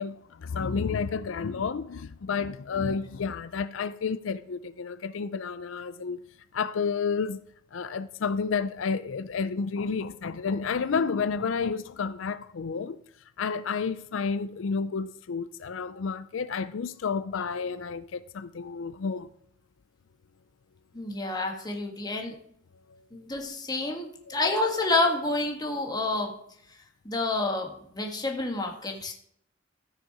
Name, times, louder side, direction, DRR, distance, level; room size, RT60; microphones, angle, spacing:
voice 1, 0.0-6.2 6.5-7.4 7.7-13.0 13.4-19.3 22.9-23.0 23.8-24.0 24.3-24.4, left 5 dB, 90° left, 0.5 m, -31 dB
voice 2, 20.9-22.3 23.1-26.3 27.0-29.1, left 2 dB, 20° left, 1.7 m, -29 dB
14.5 x 6.5 x 4.8 m
head